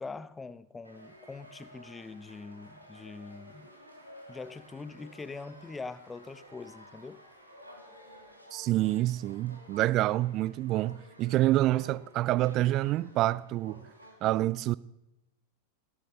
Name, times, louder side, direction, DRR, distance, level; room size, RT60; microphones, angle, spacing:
voice 1, 0.0-3.7 4.3-7.2, left 4 dB, 10° left, 0.6 m, -43 dB
sound 1, 0.8-14.2, equal, 90° right, 2.7 m, -53 dB
voice 2, 8.5-13.9 14.2-14.8, right 16 dB, 35° right, 0.4 m, -27 dB
17.0 x 11.0 x 3.8 m
figure-of-eight pair, 90°, 0 cm